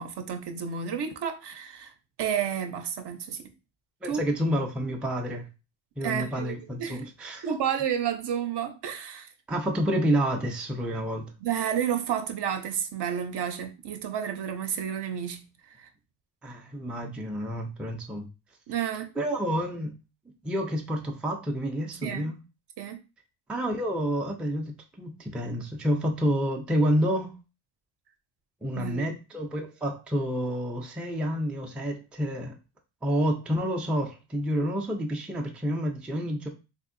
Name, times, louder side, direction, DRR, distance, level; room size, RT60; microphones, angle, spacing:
voice 1, 0.0-1.9 2.2-3.5 4.1-4.2 6.0-7.0 7.4-9.3 11.4-15.4 15.8-15.9 18.7-19.1 22.0-22.3 22.8-23.0 28.7-29.2, right 8 dB, 55° right, 0.6 m, -31 dB
voice 2, 4.0-5.5 6.0-7.4 9.5-11.3 16.4-18.3 19.2-19.9 20.4-22.4 23.5-27.3 28.6-32.6 33.0-36.5, equal, ahead, 0.3 m, -29 dB
3.5 x 2.7 x 2.5 m
cardioid pair, 110°, 48 cm